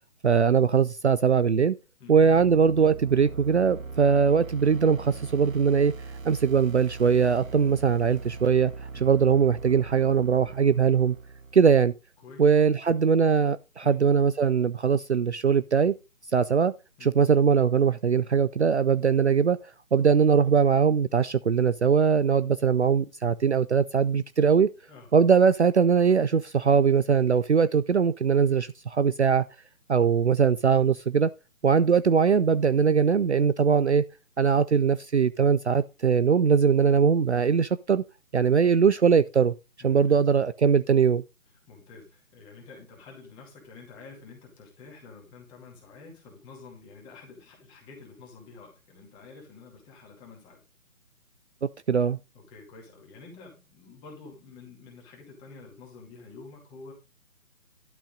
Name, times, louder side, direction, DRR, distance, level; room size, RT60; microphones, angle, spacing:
voice 1, 0.2-1.8 2.1-5.9 6.2-11.1 11.5-11.9 12.4-15.9 16.3-16.7 17.0-19.6 19.9-24.7 25.1-29.5 29.9-31.3 31.6-34.0 34.4-38.0 38.3-39.5 39.8-41.2 51.9-52.2, right 6 dB, 55° right, 0.5 m, -21 dB
sound 1, 2.1-12.0, right 4 dB, 75° right, 1.1 m, -40 dB
voice 2, 12.2-12.8 13.8-14.0 17.0-17.1 24.9-25.1 39.8-40.2 41.7-50.6 52.3-56.9, left 4 dB, 10° left, 2.3 m, -48 dB
12.0 x 6.2 x 3.8 m
figure-of-eight pair, 145°, 41 cm